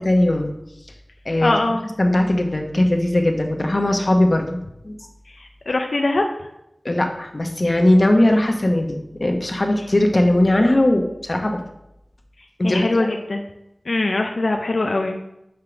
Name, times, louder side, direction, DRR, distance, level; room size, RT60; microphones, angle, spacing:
voice 1, 0.0-0.5 1.2-1.5 2.0-4.6 4.8-5.0 6.8-11.6 12.6-13.1, left 1 dB, 45° left, 3 dB, 1.0 m, -19 dB
voice 2, 1.4-1.8 5.3-6.5 12.6-13.4 13.9-15.2, left 2 dB, 85° left, 3 dB, 0.5 m, -22 dB
5.7 x 5.0 x 5.9 m, 0.84 s
wide cardioid pair, 65°, 0 cm